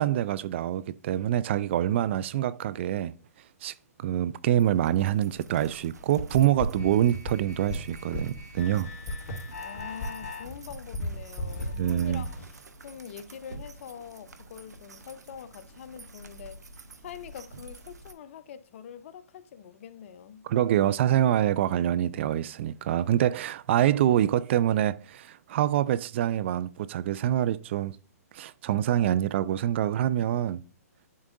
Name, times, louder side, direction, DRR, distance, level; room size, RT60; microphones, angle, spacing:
voice 1, 0.0-3.1 3.6-3.7 4.0-8.9 11.8-12.2 20.4-28.0 28.3-30.6, right 11 dB, 45° right, 0.3 m, -25 dB
sound 1, 4.5-18.1, right 2 dB, 90° right, 0.8 m, -50 dB
sound 2, 6.2-12.3, left 2 dB, 30° left, 2.8 m, -37 dB
sound 3, 6.5-12.4, equal, 70° left, 2.8 m, -40 dB
voice 2, 9.6-12.5 12.8-16.6 17.0-20.4, left 8 dB, 50° left, 0.6 m, -44 dB
11.0 x 3.7 x 2.5 m
hypercardioid pair, 135°, 9 cm